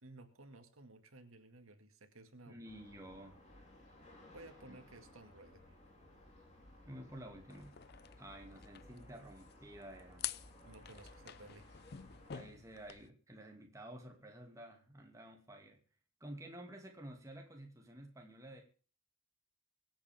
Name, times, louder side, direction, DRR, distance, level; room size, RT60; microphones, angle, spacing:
voice 1, 0.0-2.6 4.3-5.8 10.6-11.7, right 2 dB, 85° right, 6 dB, 2.2 m, -56 dB
voice 2, 2.5-3.4 4.7-4.8 6.8-7.7 8.2-10.3 12.3-15.8 16.2-18.6, right 1 dB, 15° right, 2 dB, 2.4 m, -51 dB
sound 1, 2.6-12.3, left 1 dB, 35° left, 4.2 m, -59 dB
sound 2, 7.5-13.1, left 10 dB, 50° left, 0.5 m, -49 dB
23.5 x 8.7 x 3.6 m, 0.38 s
head